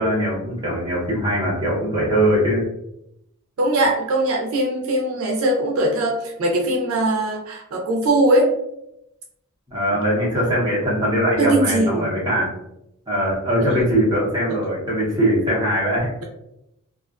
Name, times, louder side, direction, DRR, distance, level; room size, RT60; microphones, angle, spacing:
voice 1, 0.0-2.6 9.7-12.5 13.1-16.1, equal, 20° right, -5 dB, 0.8 m, -21 dB
voice 2, 3.6-8.5 11.4-12.1 13.6-13.7, right 1 dB, 70° right, 0 dB, 0.5 m, -20 dB
2.4 x 2.4 x 2.3 m, 0.82 s
head